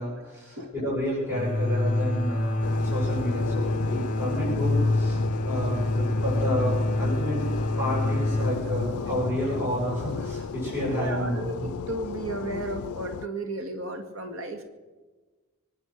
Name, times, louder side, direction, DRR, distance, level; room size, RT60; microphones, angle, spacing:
voice 1, 0.0-7.4 7.8-11.7, equal, 10° right, -6 dB, 7.1 m, -30 dB
sound 1, 1.3-10.8, left 1 dB, 40° left, 1.5 m, -27 dB
sound 2, 2.6-13.3, left 7 dB, 85° left, 0.4 m, -34 dB
voice 2, 10.9-14.6, right 2 dB, 70° right, 6 dB, 1.9 m, -34 dB
23.5 x 9.1 x 6.4 m, 1.2 s
head